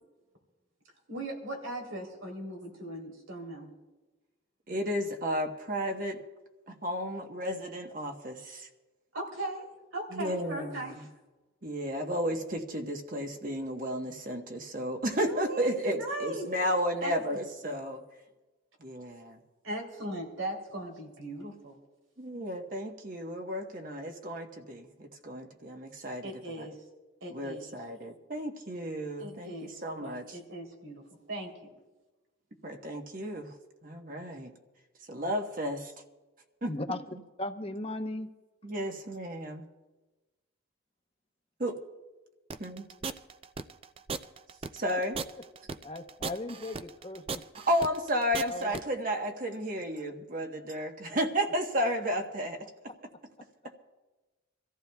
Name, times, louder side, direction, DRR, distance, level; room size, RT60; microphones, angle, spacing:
voice 1, 1.1-3.7 9.1-11.1 15.2-16.5 17.0-17.4 19.6-21.7 26.2-26.8 27.2-27.7 29.2-31.7, right 1 dB, 85° right, 1 dB, 3.2 m, -39 dB
voice 2, 4.7-6.2 6.7-8.7 10.1-11.0 11.6-18.0 18.8-19.4 22.2-26.3 26.6-26.7 27.3-30.4 32.6-33.5 33.8-34.5 35.1-35.9 36.6-36.7 38.6-39.7 41.6-41.7 42.6-42.8 44.7-45.2 47.7-53.1, equal, 45° right, 3 dB, 1.1 m, -33 dB
voice 3, 36.7-37.0 37.4-38.3 45.8-47.4 48.5-48.7, left 2 dB, 30° left, 6 dB, 0.8 m, -37 dB
sound 1, 42.5-48.8, right 4 dB, 30° right, 0.4 m, -37 dB
26.5 x 14.5 x 2.3 m, 1.2 s
head